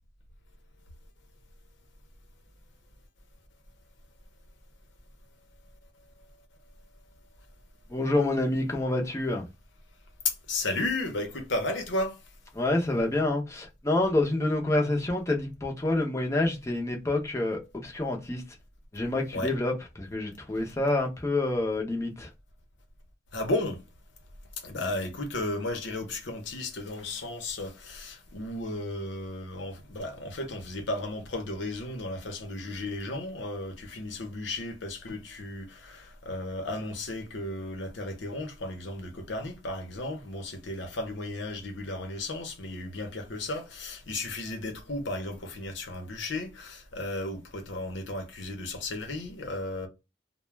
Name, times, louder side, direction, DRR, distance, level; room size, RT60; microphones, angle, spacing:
voice 1, 7.9-9.4 12.5-18.4 18.9-22.3, left 2 dB, 15° left, 0.6 m, -27 dB
voice 2, 10.2-12.2 19.3-19.5 23.3-23.8 24.6-49.9, left 2 dB, 90° left, 0.8 m, -34 dB
2.3 x 2.2 x 3.0 m
head